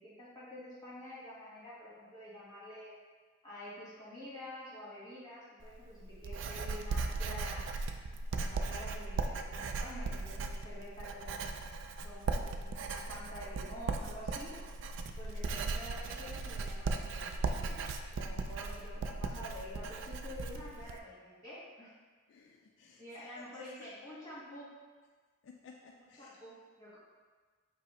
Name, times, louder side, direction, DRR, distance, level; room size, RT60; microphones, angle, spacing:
voice 1, 0.0-2.9 3.4-7.6 8.3-11.5 12.0-14.5 15.2-17.9 18.1-21.9 23.0-24.7 26.1-27.0, left 1 dB, 20° left, -8 dB, 1.3 m, -48 dB
Writing, 5.6-21.0, right 3 dB, 70° right, 0.3 m, -37 dB
voice 2, 22.3-23.0 23.4-23.9 25.4-26.3, left 4 dB, 65° left, 0 dB, 0.3 m, -56 dB
5.4 x 2.0 x 4.1 m, 1.5 s
head